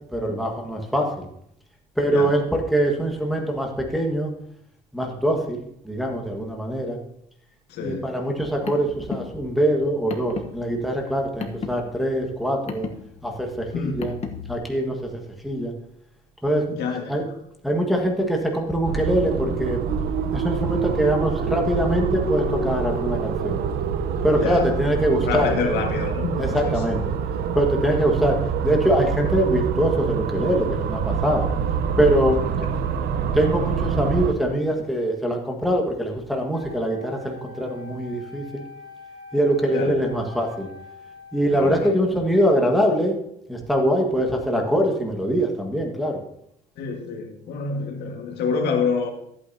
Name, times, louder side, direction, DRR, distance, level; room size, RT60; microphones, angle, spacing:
voice 1, 0.1-1.3 2.0-4.3 4.9-7.0 7.8-12.9 13.2-14.1 14.5-15.7 16.4-16.6 17.1-17.3 17.6-19.8 20.3-23.6 24.2-25.8 26.4-27.1 27.5-31.5 32.0-32.4 33.3-38.6 39.3-40.7 41.3-43.1 43.5-46.2, right 1 dB, ahead, 0 dB, 1.7 m, -23 dB
voice 2, 7.7-8.1 13.7-14.0 16.7-17.1 24.3-24.7 25.3-26.3 26.6-27.0 39.7-40.0 41.5-41.9 46.8-49.1, left 5 dB, 80° left, 3 dB, 1.8 m, -27 dB
Car, 8.3-14.5, left 6 dB, 40° left, 1.1 m, -36 dB
sound 1, 18.8-34.3, right 6 dB, 70° right, 0.9 m, -26 dB
Wind instrument woodwind instrument, 36.5-42.0, left 4 dB, 30° right, 2.6 m, -44 dB
13.5 x 8.7 x 2.8 m, 0.74 s
cardioid pair, 110°, 17 cm